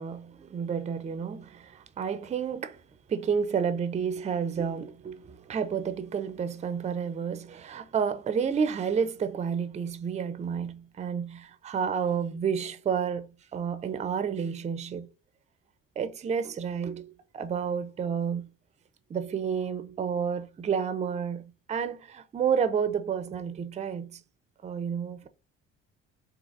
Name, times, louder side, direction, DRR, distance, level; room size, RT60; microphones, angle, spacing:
voice 1, 0.0-2.8 3.1-15.1 16.0-18.5 19.1-21.4 21.7-24.2 24.6-25.3, right 7 dB, 20° right, 0.4 m, -30 dB
3.9 x 2.7 x 2.5 m
hypercardioid pair, 55°, 34 cm